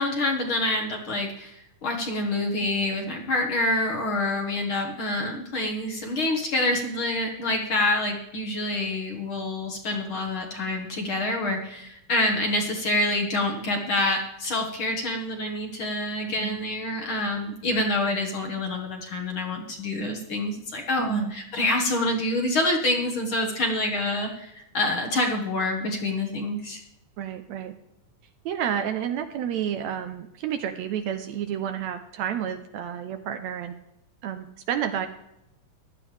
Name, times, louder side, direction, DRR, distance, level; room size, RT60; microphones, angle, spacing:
voice 1, 0.0-26.8, left 2 dB, 50° left, 1 dB, 1.9 m, -27 dB
voice 2, 16.3-16.6 21.0-21.3 27.2-27.7 28.5-33.8 34.2-35.1, right 9 dB, 75° right, 8 dB, 1.8 m, -30 dB
15.5 x 11.5 x 3.4 m, 0.83 s
omnidirectional pair, 3.6 m